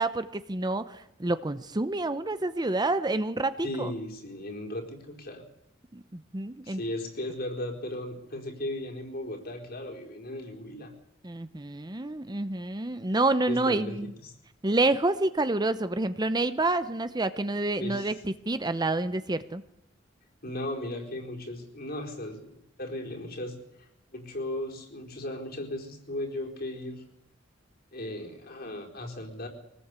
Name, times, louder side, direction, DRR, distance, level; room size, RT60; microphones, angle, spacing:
voice 1, 0.0-3.9 5.9-6.8 11.2-14.1 14.6-19.6, right 2 dB, 20° right, 12 dB, 0.8 m, -28 dB
voice 2, 3.6-5.4 6.6-10.9 13.5-14.3 17.8-18.1 20.4-27.0 27.9-29.5, left 1 dB, 55° left, 1 dB, 4.4 m, -36 dB
24.0 x 19.0 x 8.3 m, 0.78 s
head